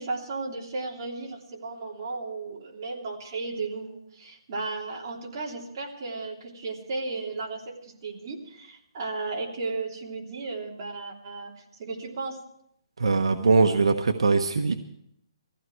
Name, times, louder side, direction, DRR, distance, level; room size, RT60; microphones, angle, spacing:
voice 1, 0.0-11.5 11.8-12.4, right 3 dB, 35° right, -2 dB, 3.2 m, -34 dB
voice 2, 13.0-14.8, right 4 dB, 80° right, 6 dB, 1.2 m, -21 dB
20.5 x 15.0 x 4.6 m, 0.76 s
hypercardioid pair, 170°, 3 cm